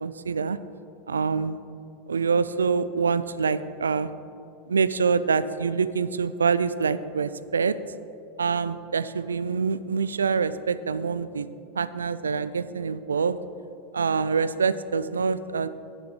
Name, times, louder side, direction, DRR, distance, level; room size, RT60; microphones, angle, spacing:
voice 1, 0.0-0.6 1.1-1.6 2.1-4.1 4.7-7.8 8.4-11.5 11.8-13.4 13.9-15.7, right 5 dB, 85° right, 15 dB, 0.3 m, -25 dB
9.7 x 7.1 x 5.3 m, 2.6 s
hypercardioid pair, 90°, 0 cm